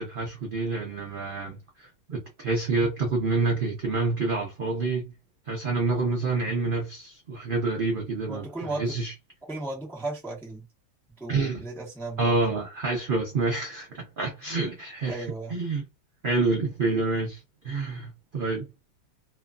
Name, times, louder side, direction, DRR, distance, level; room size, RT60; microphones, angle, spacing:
voice 1, 0.0-5.1 5.5-9.1 11.3-11.7 12.2-15.2 15.5-15.8 16.2-18.7, right 3 dB, 70° right, 0.5 m, -28 dB
voice 2, 8.3-9.0 9.5-10.6 11.2-12.5 15.0-15.6, right 2 dB, 5° left, 0.4 m, -35 dB
2.9 x 2.2 x 2.4 m
omnidirectional pair, 1.8 m